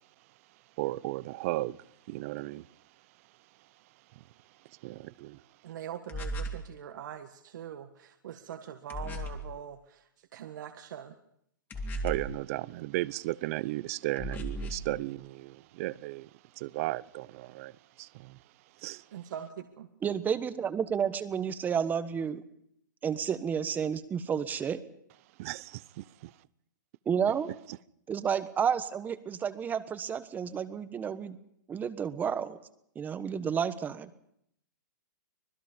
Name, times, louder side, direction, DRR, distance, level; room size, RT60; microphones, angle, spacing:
voice 1, 0.8-1.8 2.1-2.7 4.8-5.4 12.0-16.3 16.6-18.4 18.8-19.0 25.4-26.3, right 18 dB, 45° right, 0.7 m, -35 dB
voice 2, 5.6-11.1 19.1-19.9, right 9 dB, 65° right, 1.7 m, -43 dB
sound 1, 6.1-6.7 8.9-9.5 11.7-12.4 14.2-14.9, right 1 dB, 20° left, 2.7 m, -36 dB
voice 3, 20.0-22.4 23.0-24.8 27.0-27.5 28.1-31.4 31.7-32.6 32.9-34.1, right 7 dB, 15° right, 1.3 m, -31 dB
25.5 x 20.0 x 5.3 m
hypercardioid pair, 140°, 11 cm